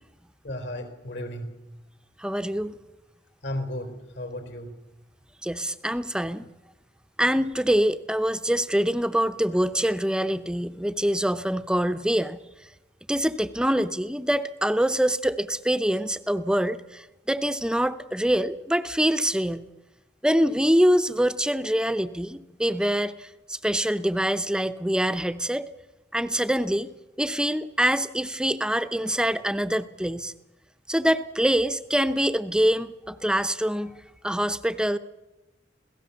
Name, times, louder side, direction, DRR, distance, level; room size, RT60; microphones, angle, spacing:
voice 1, 0.4-1.5 3.4-4.7, left 1 dB, 75° left, 7 dB, 4.0 m, -34 dB
voice 2, 2.2-2.7 5.4-6.5 7.2-12.4 13.1-19.7 20.2-25.7 26.1-26.9 27.2-30.3 30.9-33.9 34.2-35.0, equal, 5° right, 11 dB, 0.7 m, -25 dB
27.0 x 17.5 x 7.0 m, 1.0 s
head